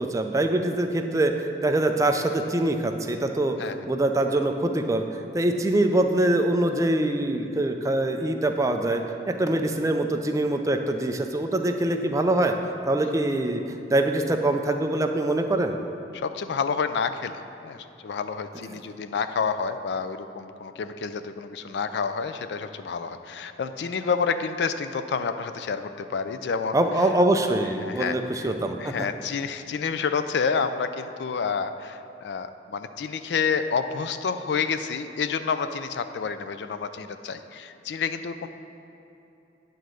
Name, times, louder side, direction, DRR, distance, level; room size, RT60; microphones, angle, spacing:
voice 1, 0.0-12.5 12.9-13.6 13.9-15.8 18.7-18.8 26.7-28.9, right 1 dB, 20° right, 5 dB, 0.4 m, -24 dB
voice 2, 16.1-17.3 17.6-26.8 27.8-28.5 28.8-38.5, left 5 dB, 70° left, 10 dB, 0.4 m, -29 dB
9.3 x 3.9 x 6.3 m, 3.0 s
head